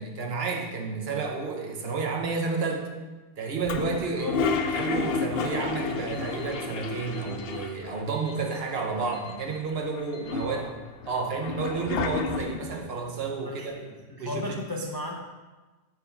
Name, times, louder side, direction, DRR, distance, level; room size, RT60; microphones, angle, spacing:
voice 1, 0.0-2.9 3.4-4.3 4.6-10.6 11.1-13.8 14.2-14.4, right 4 dB, 55° right, 2 dB, 1.0 m, -31 dB
Toilet flush, 3.6-8.0 8.3-8.4 8.6-9.4 9.9-12.8, left 5 dB, 60° left, 0.7 m, -31 dB
voice 2, 4.2-4.5 10.4-10.7 13.4-15.1, left 2 dB, 35° left, -1 dB, 0.3 m, -35 dB
Alarm, 6.1-6.6 7.1-7.6 8.1-8.6 9.1-9.6 10.1-10.6, left 7 dB, 85° left, 1.2 m, -49 dB
6.0 x 3.6 x 5.7 m, 1.2 s
omnidirectional pair, 1.3 m